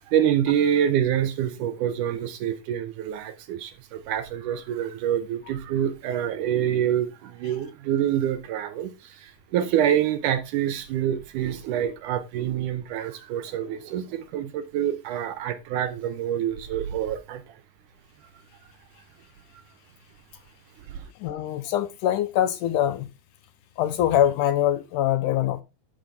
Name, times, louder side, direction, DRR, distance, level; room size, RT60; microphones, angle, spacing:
voice 1, 0.0-17.6 20.9-21.1, right 10 dB, 75° right, 2.1 m, -26 dB
voice 2, 21.2-23.1 23.8-25.6, left 11 dB, 75° left, 2.1 m, -23 dB
11.5 x 6.0 x 3.5 m
omnidirectional pair, 4.0 m